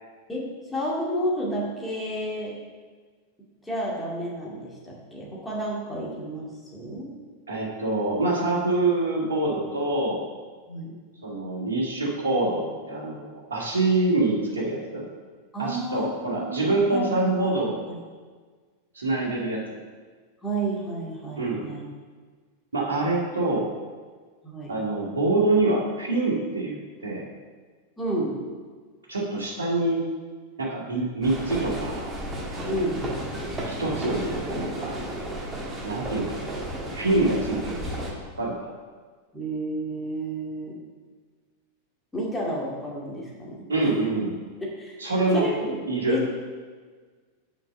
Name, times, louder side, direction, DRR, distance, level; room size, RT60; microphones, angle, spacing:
voice 1, 0.3-2.5 3.6-7.1 10.7-11.0 15.5-18.0 20.4-21.9 24.4-24.8 28.0-28.4 32.6-33.0 39.3-40.8 42.1-43.9 44.6-45.0 45.3-45.8 46.1-46.3, right 1 dB, 10° left, -5 dB, 2.2 m, -31 dB
voice 2, 7.5-10.2 11.2-15.0 15.6-17.8 18.9-19.8 21.4-21.6 22.7-23.7 24.7-27.3 29.1-30.0 30.6-32.1 33.7-35.0 35.8-36.6 36.9-38.0 38.4-38.7 43.7-44.3 45.0-45.5 45.9-46.2, right 2 dB, 70° right, -5 dB, 2.0 m, -25 dB
sound 1, 31.2-38.1, right 1 dB, 15° right, 1.6 m, -33 dB
6.4 x 5.3 x 6.5 m, 1.5 s
figure-of-eight pair, 90°, 0 cm